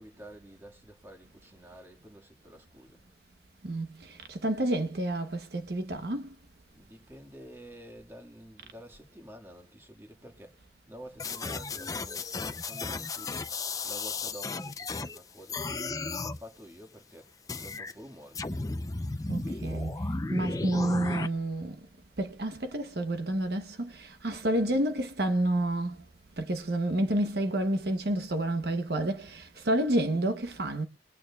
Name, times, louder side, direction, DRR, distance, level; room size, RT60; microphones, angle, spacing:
voice 1, 0.0-3.0 6.7-10.6 10.9-18.4, equal, 15° right, 1.7 m, -49 dB
voice 2, 3.6-6.4 19.3-21.9 22.2-26.0 26.4-30.8, right 1 dB, 60° right, 0.9 m, -29 dB
sound 1, 11.2-15.2 15.5-16.4 17.5-17.9 18.3-21.3, left 3 dB, 20° left, 0.5 m, -34 dB
22.5 x 8.9 x 2.3 m
head